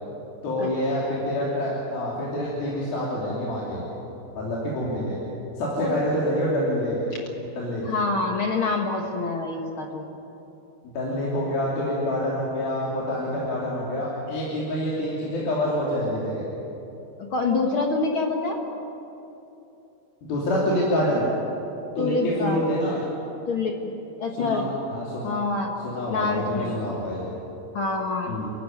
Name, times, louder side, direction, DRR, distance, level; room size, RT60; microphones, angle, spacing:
voice 1, 0.4-3.8 4.3-5.2 5.6-7.0 7.5-7.8 10.8-16.4 20.2-21.3 22.0-23.0 24.4-25.3 25.8-27.2 28.3-28.5, left 1 dB, 70° left, -5 dB, 4.9 m, -27 dB
voice 2, 7.8-10.1 17.3-18.6 22.0-22.7 23.5-23.9 24.2-24.7 25.2-25.7 26.1-26.8 27.7-28.4, left 3 dB, 55° left, 2 dB, 1.4 m, -26 dB
29.5 x 15.0 x 9.3 m, 3.0 s
omnidirectional pair, 4.4 m